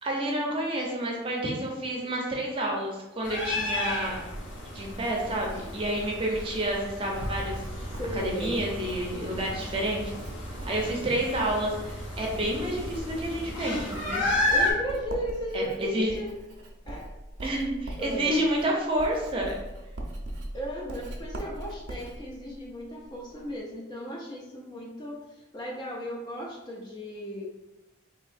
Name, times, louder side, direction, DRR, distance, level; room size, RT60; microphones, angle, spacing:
voice 1, 0.0-4.1 4.7-7.6 8.1-10.1 10.6-14.2 15.5-16.1 17.4-19.6, right 1 dB, 30° right, -1 dB, 0.6 m, -29 dB
sound 1, 3.2-14.7, left 1 dB, 90° left, 0.8 m, -33 dB
Writing, 4.1-23.6, right 1 dB, 75° right, 0.5 m, -42 dB
voice 2, 8.0-8.6 14.5-16.3 16.8-17.0 18.0-18.4 20.5-27.4, equal, 20° left, -2 dB, 0.4 m, -35 dB
3.7 x 2.7 x 2.4 m, 0.98 s
head